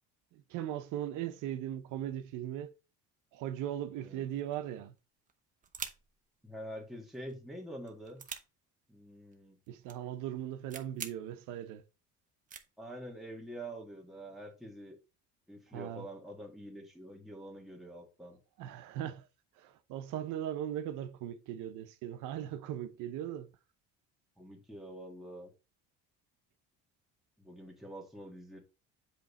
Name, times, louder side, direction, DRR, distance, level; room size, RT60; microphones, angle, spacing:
voice 1, 0.3-2.7 3.3-4.9 9.7-11.8 15.7-16.1 18.6-19.3 19.6-23.5, right 11 dB, 85° right, 0.8 m, -39 dB
sound 1, 4.3-4.7 5.0-5.1 5.3-6.2 7.1-7.4 7.7-8.4 9.3-9.4 9.6-9.9 10.3-10.4 10.7-11.1 11.7-11.8 12.5-12.7, right 7 dB, 25° right, 0.8 m, -44 dB
voice 2, 6.4-8.2 8.9-9.6 12.8-15.0 15.5-18.4 24.4-25.5 27.4-28.6, right 1 dB, ahead, 1.7 m, -46 dB
7.7 x 3.3 x 4.2 m
cardioid pair, 145°, 30 cm